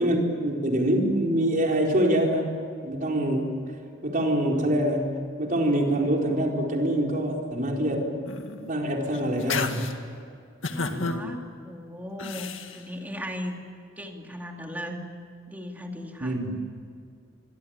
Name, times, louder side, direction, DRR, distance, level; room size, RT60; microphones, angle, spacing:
voice 1, 0.0-2.5 2.8-3.5 4.0-8.1 8.7-9.9 10.9-11.2 16.2-16.5, right 1 dB, 45° right, 0 dB, 4.4 m, -25 dB
sound 1, 8.3-8.7 9.1-9.9 10.6-11.2 12.2-12.8, left 4 dB, 80° left, 2.0 m, -31 dB
voice 2, 10.7-13.6 14.0-15.0 15.5-16.3, equal, 10° right, 2 dB, 2.9 m, -37 dB
26.5 x 23.0 x 9.0 m, 2.3 s
head